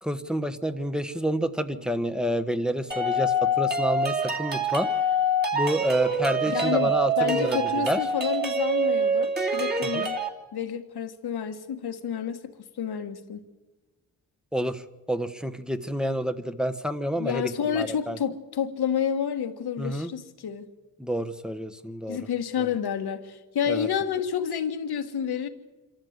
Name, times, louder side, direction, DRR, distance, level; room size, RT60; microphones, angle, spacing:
voice 1, 0.0-4.9 5.5-7.6 7.8-8.0 9.8-10.0 14.5-14.8 15.1-18.2 19.8-20.1 21.0-22.2 23.7-23.9, right 1 dB, ahead, 8 dB, 1.2 m, -28 dB
sound 1, 2.9-10.3, right 1 dB, 25° right, 2.7 m, -25 dB
voice 2, 6.5-6.9 7.2-10.2 10.5-12.4 12.8-13.5 17.2-20.7 22.1-25.5, left 8 dB, 80° left, 8 dB, 1.6 m, -29 dB
26.5 x 13.5 x 8.1 m, 1.3 s
cardioid pair, 70°, 38 cm